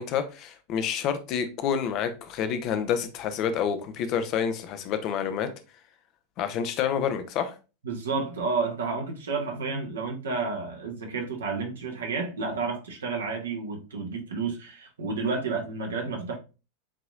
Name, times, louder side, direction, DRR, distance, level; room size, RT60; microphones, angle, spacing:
voice 1, 0.0-5.5 6.4-7.6, left 8 dB, 40° left, 0.7 m, -28 dB
voice 2, 7.8-16.4, right 4 dB, 65° right, 1.3 m, -31 dB
7.3 x 3.0 x 2.4 m
figure-of-eight pair, 90°, 0 cm